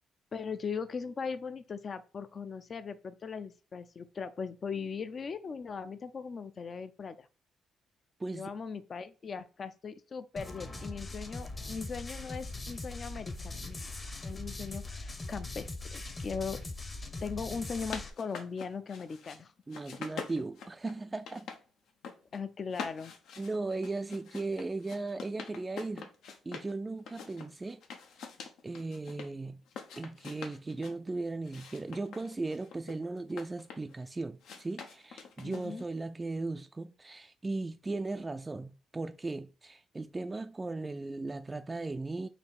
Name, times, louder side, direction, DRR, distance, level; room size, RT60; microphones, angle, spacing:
voice 1, 0.3-7.3 8.3-13.8 14.2-16.6 17.2-19.5 22.3-23.1 35.4-35.8, left 5 dB, 45° left, 0.5 m, -39 dB
sound 1, 10.4-18.1, left 2 dB, 25° left, 0.8 m, -41 dB
sound 2, 17.5-19.4 19.7-21.6 21.9-22.4 22.7-26.7 27.1-29.3 29.7-31.0 31.4-34.0 34.4-35.9, left 6 dB, 80° left, 0.8 m, -45 dB
voice 2, 19.7-21.5 23.4-26.1 26.4-27.8 28.6-29.6 30.0-42.3, right 3 dB, 20° right, 0.3 m, -37 dB
4.2 x 3.0 x 4.1 m
cardioid pair, 90°, 0 cm